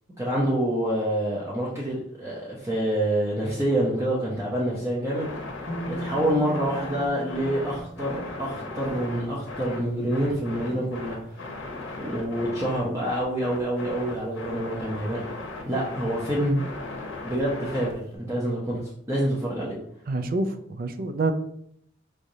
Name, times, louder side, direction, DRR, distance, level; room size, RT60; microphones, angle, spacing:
voice 1, 0.2-5.3 5.8-11.4 12.0-15.2 15.7-16.6 17.2-19.8, right 1 dB, 15° right, -6 dB, 0.7 m, -27 dB
sound 1, 5.1-18.2, left 2 dB, 80° left, 0.9 m, -37 dB
sound 2, 5.7-9.6, equal, 35° left, 0.5 m, -38 dB
voice 2, 20.1-21.3, right 3 dB, 50° right, 9 dB, 0.4 m, -27 dB
4.8 x 3.2 x 2.7 m, 0.71 s
head